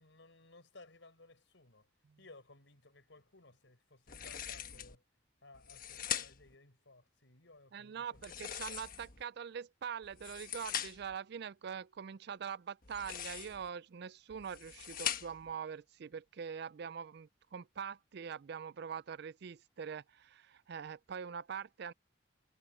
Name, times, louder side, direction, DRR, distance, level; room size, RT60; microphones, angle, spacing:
voice 1, 0.0-1.9 2.2-5.1 5.4-8.4, left 2 dB, 70° left, 5.4 m, -59 dB
sound 1, 4.1-5.0 5.5-6.5 8.1-9.2 10.0-11.1 12.8-13.7 14.3-15.5, left 9 dB, 45° left, 1.3 m, -41 dB
voice 2, 7.7-21.9, right 7 dB, 55° right, 0.4 m, -44 dB
head